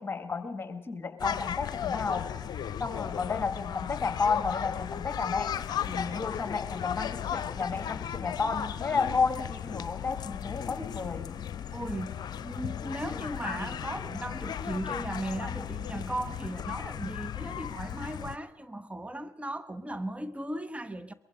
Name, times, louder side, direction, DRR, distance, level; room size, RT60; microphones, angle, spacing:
voice 1, 0.0-2.3 2.8-11.3, left 5 dB, 25° left, 2.5 m, -32 dB
sound 1, 1.2-18.4, left 9 dB, 50° left, 0.8 m, -36 dB
voice 2, 11.7-21.1, right 1 dB, 15° right, 1.2 m, -37 dB
22.5 x 22.5 x 5.3 m
hypercardioid pair, 45°, 9 cm